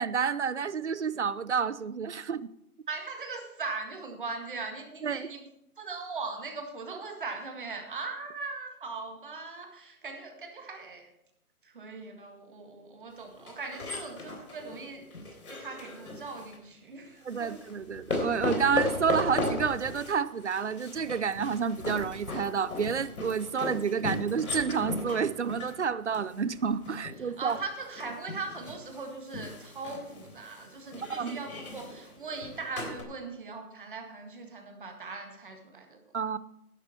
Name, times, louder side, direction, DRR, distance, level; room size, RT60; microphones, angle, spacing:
voice 1, 0.0-2.5 5.0-5.3 17.2-27.6 31.1-31.4 36.1-36.4, right 6 dB, 50° right, 0.5 m, -29 dB
voice 2, 2.9-5.4 5.8-11.1 11.6-17.5 27.2-36.0, right 4 dB, 35° right, 1.8 m, -40 dB
sound 1, 13.4-16.6 17.3-33.0, left 2 dB, 70° left, 3.6 m, -37 dB
11.5 x 11.5 x 4.3 m
hypercardioid pair, 170°, 45 cm